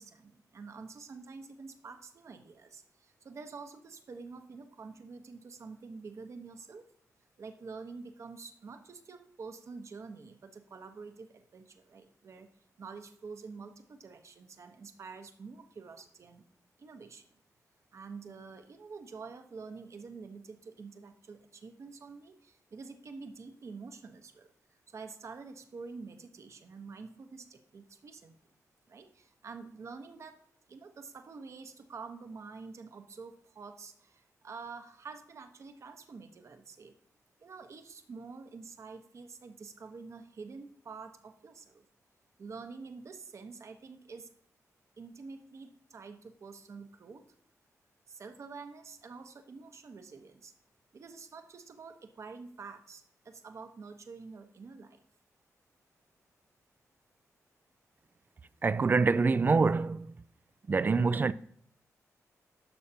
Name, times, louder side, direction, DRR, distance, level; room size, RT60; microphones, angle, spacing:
voice 1, 0.0-6.9 7.4-12.5 12.8-16.4 16.8-17.3 17.9-24.5 24.9-28.3 28.9-30.4 30.7-36.9 37.4-41.8 42.4-44.3 45.0-47.3 48.1-50.5 50.9-55.0, right 4 dB, 55° right, 1.0 m, -47 dB
voice 2, 58.6-60.1 60.7-61.3, right 4 dB, 35° right, 0.4 m, -25 dB
11.5 x 6.5 x 2.8 m
cardioid pair, 80°, 6 cm